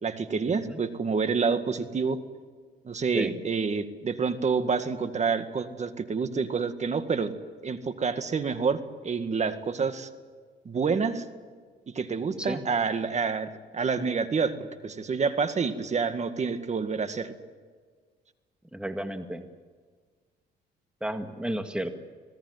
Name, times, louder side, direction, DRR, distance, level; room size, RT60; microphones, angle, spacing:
voice 1, 0.0-2.2 2.8-7.3 7.6-10.1 10.7-11.3 12.0-14.5 14.8-17.3, right 5 dB, 40° right, 9 dB, 2.0 m, -28 dB
voice 2, 18.7-19.4 21.0-22.0, right 1 dB, 5° right, 6 dB, 1.9 m, -32 dB
26.0 x 18.0 x 9.5 m, 1.5 s
cardioid pair, 95°, 19 cm